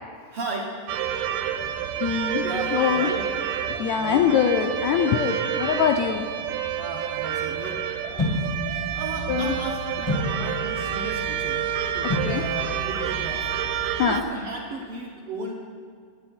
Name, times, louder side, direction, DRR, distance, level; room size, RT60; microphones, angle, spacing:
voice 1, 0.3-0.8 2.4-3.3 3.9-4.3 6.8-7.8 8.9-11.7 11.9-13.5 14.0-15.5, right 3 dB, 65° right, -1 dB, 1.5 m, -35 dB
sound 1, 0.9-14.2, right 9 dB, 85° right, 2.2 m, -29 dB
voice 2, 2.0-2.4 2.7-3.1 3.8-6.3 8.7-8.8 9.3-9.5 12.0-12.4 14.0-14.2, left 8 dB, 80° left, 4 dB, 1.7 m, -23 dB
sound 2, 8.2-14.2, left 2 dB, 30° left, 0.5 m, -32 dB
17.0 x 9.7 x 4.3 m, 2.1 s
omnidirectional pair, 3.7 m